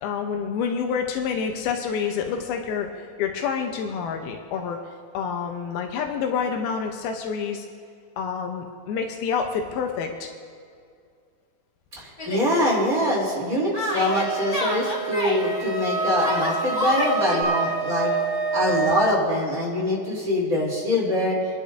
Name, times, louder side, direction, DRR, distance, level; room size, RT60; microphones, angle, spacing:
voice 1, 0.0-4.8 5.1-7.7 8.2-10.3, left 6 dB, 90° left, 3 dB, 2.7 m, -28 dB
voice 2, 11.9-18.1 18.5-21.3, left 1 dB, 25° right, -6 dB, 3.2 m, -24 dB
Yell, 12.2-12.5 13.7-15.4 16.2-17.4, left 1 dB, 35° left, 1.7 m, -28 dB
Wind instrument woodwind instrument, 14.1-19.2, right 4 dB, 5° right, 2.3 m, -27 dB
30.0 x 10.5 x 2.6 m, 2.3 s
omnidirectional pair, 4.4 m